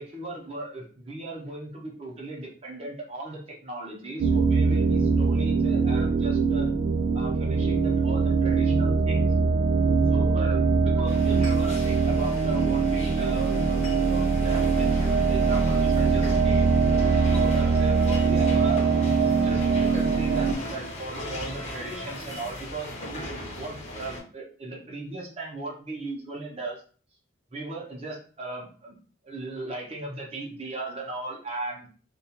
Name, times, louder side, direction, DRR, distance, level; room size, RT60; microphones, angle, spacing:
voice 1, 0.0-6.7 7.1-9.3 10.1-16.7 17.2-19.1 19.4-26.8 27.5-29.0 29.2-31.9, right 2 dB, 30° right, -2 dB, 0.6 m, -37 dB
sound 1, 4.2-20.6, right 4 dB, 70° right, 0.3 m, -22 dB
sound 2, 11.1-24.2, left 1 dB, 35° left, 0.7 m, -39 dB
2.3 x 2.3 x 2.7 m, 0.41 s
head